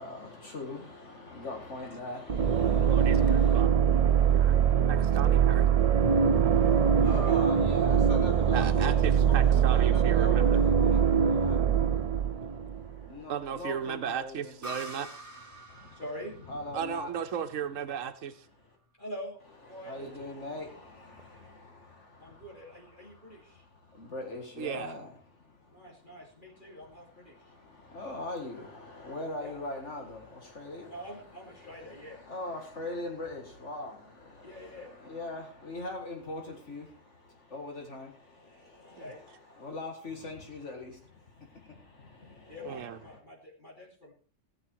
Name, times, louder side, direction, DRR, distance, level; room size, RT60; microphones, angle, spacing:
voice 1, 0.0-3.6 7.0-14.6 15.5-16.0 16.5-17.1 18.6-18.8 19.7-43.2, left 2 dB, 65° left, 2.1 m, -42 dB
sound 1, 2.3-13.1, right 8 dB, 55° right, 0.4 m, -23 dB
voice 2, 2.8-3.7 4.3-5.7 8.5-10.6 13.3-15.1 16.7-18.5 20.0-20.1 24.6-24.9 39.0-39.1 42.6-43.0, right 8 dB, 85° right, 1.2 m, -35 dB
voice 3, 7.0-7.4 15.9-16.3 19.0-19.4 19.7-20.0 22.2-23.6 25.7-27.3 29.4-29.6 30.9-32.2 34.4-34.9 38.8-39.2 42.5-44.1, equal, 40° left, 2.9 m, -44 dB
sound 2, 14.6-18.2, right 1 dB, 15° right, 2.5 m, -46 dB
15.0 x 7.9 x 4.6 m
omnidirectional pair, 1.3 m